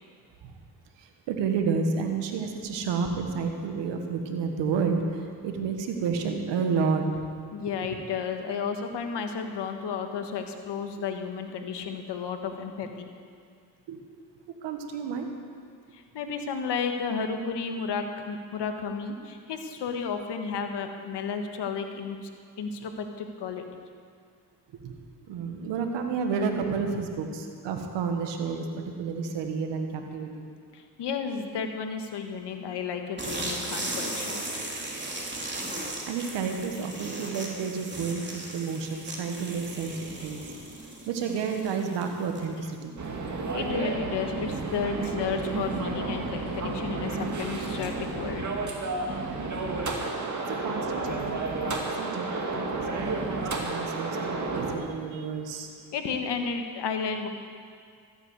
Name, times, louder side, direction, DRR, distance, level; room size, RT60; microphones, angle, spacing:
voice 1, 1.0-7.1 7.8-7.9 13.9-14.0 14.6-15.3 24.8-24.9 25.3-28.7 29.0-30.5 34.5-34.6 36.1-40.5 41.1-42.9 50.5-55.7, right 5 dB, 85° right, 4 dB, 1.5 m, -31 dB
voice 2, 7.5-13.1 15.9-22.3 22.6-23.6 30.7-34.4 43.5-48.5 55.9-57.3, left 6 dB, 75° left, 6 dB, 1.5 m, -32 dB
sound 1, 33.2-42.7, right 1 dB, 25° right, 3.4 m, -37 dB
sound 2, 43.0-54.8, right 3 dB, 45° right, 2.3 m, -31 dB
13.5 x 9.0 x 8.1 m, 2.1 s
supercardioid pair, 55°, 42 cm